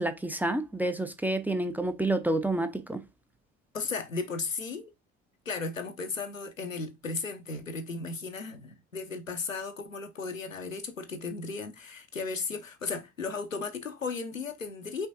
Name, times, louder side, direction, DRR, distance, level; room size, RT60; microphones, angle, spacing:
voice 1, 0.0-3.0, right 2 dB, 5° right, 0.5 m, -29 dB
voice 2, 3.7-4.9 5.5-15.1, left 4 dB, 90° left, 0.7 m, -35 dB
5.6 x 3.7 x 2.5 m
figure-of-eight pair, 55°, 39 cm